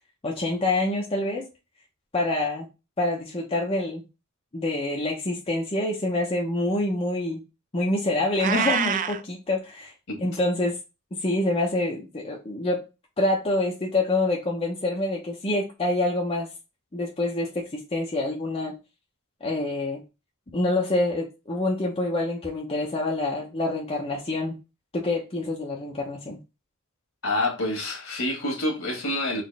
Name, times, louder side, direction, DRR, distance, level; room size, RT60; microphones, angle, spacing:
voice 1, 0.2-1.4 2.1-2.7 3.0-4.0 4.5-7.4 7.7-9.9 10.2-10.8 11.2-12.8 13.2-16.5 16.9-18.7 19.4-20.0 20.5-24.6 24.9-26.4, left 2 dB, 25° left, 0.8 m, -26 dB
Meow, 8.4-9.2, right 8 dB, 35° right, 0.4 m, -25 dB
voice 2, 27.2-29.4, left 1 dB, 65° left, 1.6 m, -27 dB
4.1 x 3.1 x 3.2 m
head